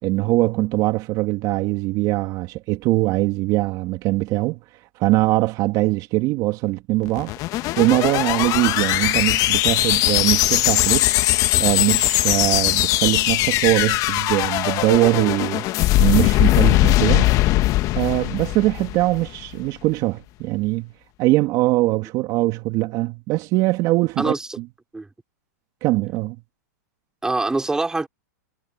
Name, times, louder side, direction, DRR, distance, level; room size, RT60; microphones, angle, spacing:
voice 1, 0.0-4.6 5.0-7.3 7.8-11.1 11.6-15.7 16.0-17.3 17.9-20.9 21.2-24.3 25.8-26.4, right 19 dB, 40° right, 2.4 m, -21 dB
sound 1, 7.1-19.4, left 17 dB, 35° left, 1.3 m, -20 dB
voice 2, 24.2-24.6 24.9-25.1 27.2-28.1, right 2 dB, 5° right, 3.0 m, -24 dB
hypercardioid pair, 130°, 10 cm